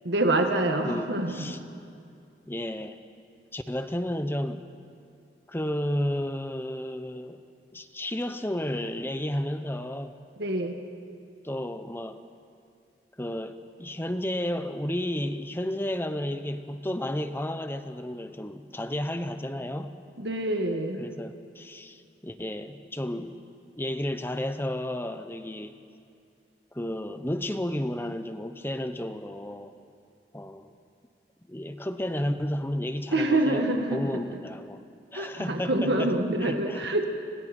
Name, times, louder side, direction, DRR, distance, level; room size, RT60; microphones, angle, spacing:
voice 1, 0.0-1.6 10.4-10.8 20.2-21.0 33.1-34.2 35.1-37.0, right 1 dB, 70° right, 3 dB, 1.9 m, -26 dB
voice 2, 0.8-1.6 2.5-3.0 3.5-4.7 5.5-7.4 7.7-10.2 11.4-12.2 13.2-19.9 21.0-23.4 23.8-25.7 26.7-29.7 30.3-30.7 31.5-33.7 33.9-34.8 35.1-36.1 36.4-36.8, left 1 dB, 15° left, 9 dB, 0.9 m, -32 dB
30.0 x 27.0 x 4.5 m, 2.4 s
head